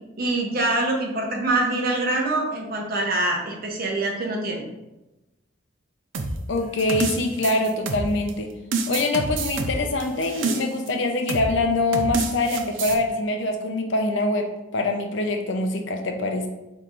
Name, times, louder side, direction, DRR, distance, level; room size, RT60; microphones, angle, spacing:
voice 1, 0.2-4.6, right 2 dB, 45° right, 0 dB, 0.8 m, -24 dB
sound 1, 6.1-8.3 8.7-10.9 11.3-11.5 11.9-13.0, right 3 dB, 70° right, 0.5 m, -27 dB
voice 2, 6.5-8.5 8.9-14.5 14.7-16.5, left 2 dB, 65° left, 4 dB, 0.5 m, -24 dB
4.4 x 3.6 x 2.5 m, 0.99 s
head